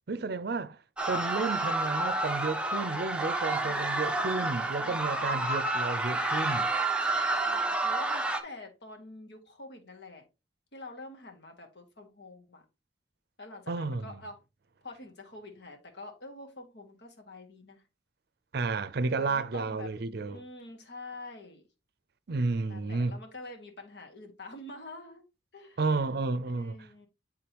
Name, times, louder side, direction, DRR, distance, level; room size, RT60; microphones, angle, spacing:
voice 1, 0.1-0.8 1.1-6.7 13.7-14.2 18.5-20.4 22.3-23.2 25.8-26.9, right 3 dB, 60° right, 0.5 m, -32 dB
sound 1, 1.0-8.4, right 2 dB, 5° right, 0.7 m, -29 dB
voice 2, 3.6-4.5 4.8-5.5 7.4-10.2 10.7-12.6 13.4-14.4 14.8-17.8 19.1-21.6 22.7-25.2 25.5-26.1 26.5-27.1, left 2 dB, 65° left, 1.7 m, -47 dB
9.6 x 3.7 x 2.9 m
head